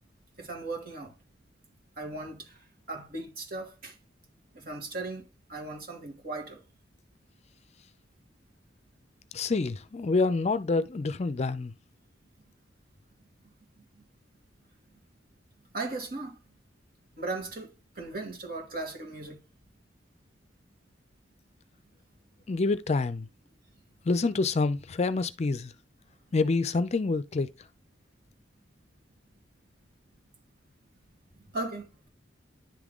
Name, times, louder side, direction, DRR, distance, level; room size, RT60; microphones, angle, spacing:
voice 1, 0.4-1.1 2.0-2.6 2.9-4.0 4.5-5.2 5.5-6.6 15.7-16.4 17.2-19.4 31.5-32.1, right 2 dB, 55° right, 2.5 m, -37 dB
voice 2, 9.3-11.7 22.5-23.3 24.1-25.7 26.3-27.5, left 3 dB, 35° left, 0.4 m, -27 dB
10.5 x 3.7 x 3.6 m
head